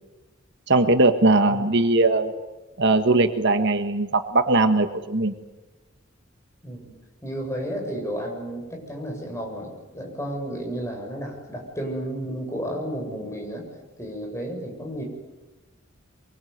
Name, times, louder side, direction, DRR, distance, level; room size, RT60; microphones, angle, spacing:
voice 1, 0.7-2.3 2.8-5.3, right 2 dB, 60° right, 8 dB, 1.6 m, -20 dB
voice 2, 6.6-6.9 7.2-13.7 14.0-15.0, equal, 15° left, 1 dB, 7.3 m, -32 dB
24.5 x 23.5 x 9.5 m, 1.1 s
head